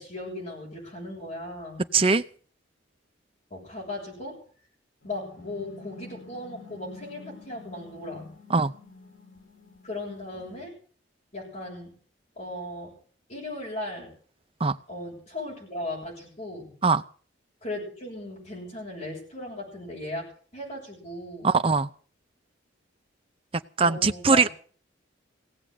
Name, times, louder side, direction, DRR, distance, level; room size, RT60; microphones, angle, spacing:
voice 1, 0.0-1.9 3.5-4.4 5.0-8.3 9.8-10.8 11.3-12.0 12.4-13.0 13.3-14.1 14.9-16.7 17.6-21.6 23.8-24.5, left 1 dB, 40° left, 7.5 m, -37 dB
voice 2, 1.9-2.2 8.5-8.7 14.6-14.8 16.8-17.0 21.4-21.9 23.8-24.5, right 4 dB, 30° right, 0.6 m, -21 dB
sound 1, 5.0-10.7, left 3 dB, 80° left, 3.9 m, -49 dB
17.5 x 7.5 x 9.4 m
head